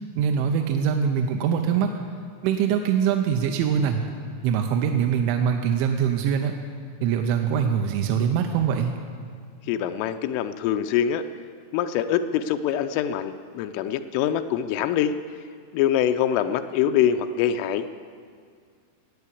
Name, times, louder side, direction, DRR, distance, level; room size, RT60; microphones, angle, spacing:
voice 1, 0.2-1.9 2.4-4.1 4.4-6.5 7.0-9.0, right 7 dB, 85° right, 4 dB, 3.0 m, -23 dB
voice 2, 9.7-11.2 11.7-15.1 15.7-18.0, left 9 dB, 85° left, 8 dB, 3.0 m, -24 dB
15.0 x 8.7 x 8.4 m, 2.1 s
omnidirectional pair, 5.6 m